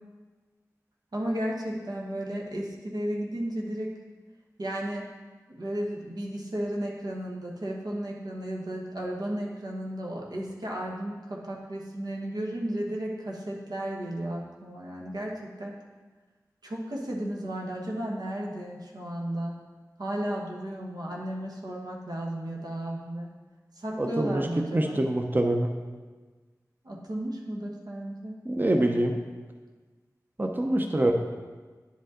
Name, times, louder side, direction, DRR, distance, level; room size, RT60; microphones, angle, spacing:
voice 1, 1.1-3.9 4.6-5.0 5.5-15.8 16.6-19.5 20.0-23.3 23.8-25.0 26.8-28.4, right 1 dB, 90° right, -2 dB, 1.2 m, -34 dB
voice 2, 24.0-24.5 24.7-25.7 28.5-29.1 30.4-31.1, right 1 dB, 30° right, 3 dB, 0.6 m, -25 dB
9.9 x 5.3 x 3.8 m, 1.4 s
wide cardioid pair, 50°, 7 cm